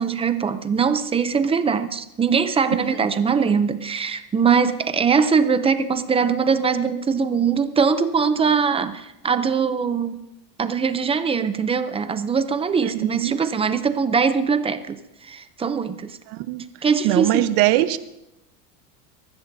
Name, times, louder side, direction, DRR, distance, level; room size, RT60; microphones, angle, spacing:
voice 1, 0.0-10.2 10.6-15.0 15.2-16.2 16.8-17.4, right 6 dB, 15° right, 10 dB, 0.4 m, -21 dB
voice 2, 12.8-13.4 16.3-16.6 17.0-18.0, right 15 dB, 70° right, 11 dB, 1.1 m, -22 dB
24.0 x 14.0 x 2.7 m, 0.88 s
supercardioid pair, 140°, 47 cm